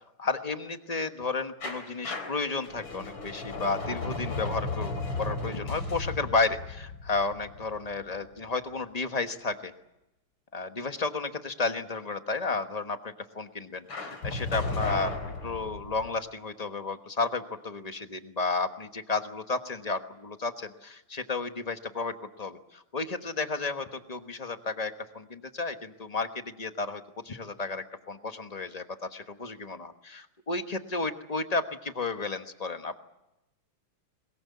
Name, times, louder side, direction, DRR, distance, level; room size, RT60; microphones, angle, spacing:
voice 1, 0.2-9.7 10.5-15.1 15.4-33.0, left 3 dB, 25° left, 7 dB, 1.0 m, -32 dB
sound 1, 1.6-8.4 13.9-16.1, left 3 dB, 65° left, 4.0 m, -35 dB
21.5 x 21.5 x 8.4 m, 0.93 s
omnidirectional pair, 2.3 m